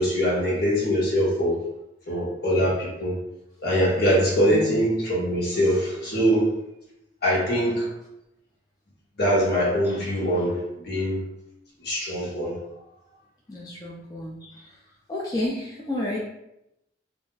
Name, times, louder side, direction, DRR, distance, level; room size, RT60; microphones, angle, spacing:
voice 1, 0.0-1.6 2.1-3.2 3.6-6.6 7.2-7.9 9.2-11.3 11.8-12.5, equal, 55° left, -5 dB, 1.0 m, -23 dB
voice 2, 4.5-4.8 13.5-14.8 15.1-16.2, left 1 dB, 20° left, -6 dB, 0.3 m, -31 dB
2.4 x 2.0 x 3.7 m, 0.85 s
head